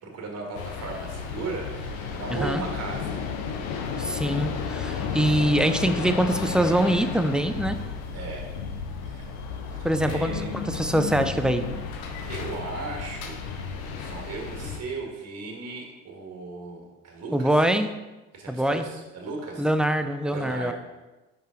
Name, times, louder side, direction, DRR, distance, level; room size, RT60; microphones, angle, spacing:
voice 1, 0.0-3.9 8.1-8.5 9.0-9.3 9.7-10.5 12.1-17.5 18.3-19.7 20.3-20.7, right 3 dB, 40° right, 1 dB, 1.7 m, -37 dB
sound 1, 0.5-14.8, left 6 dB, 80° left, 0.8 m, -33 dB
voice 2, 2.3-2.6 4.0-7.8 9.8-11.7 17.3-17.9 18.5-18.9 19.6-20.7, right 1 dB, ahead, 8 dB, 0.4 m, -24 dB
5.2 x 5.1 x 3.8 m, 1.1 s
hypercardioid pair, 65°, 39 cm